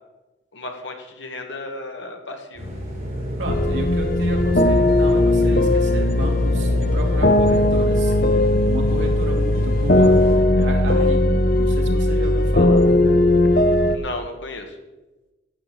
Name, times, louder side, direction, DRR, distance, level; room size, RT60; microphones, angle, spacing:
voice 1, 0.5-2.7 13.9-14.8, left 2 dB, 80° left, 3 dB, 2.0 m, -34 dB
sound 1, 2.6-10.4, equal, 40° right, 4.9 m, -30 dB
voice 2, 3.4-8.1 8.7-10.2 10.6-12.9, equal, 75° right, 0 dB, 2.5 m, -32 dB
sound 2, 3.5-14.0, left 1 dB, 50° left, 0.8 m, -18 dB
11.5 x 8.1 x 7.1 m, 1.1 s
head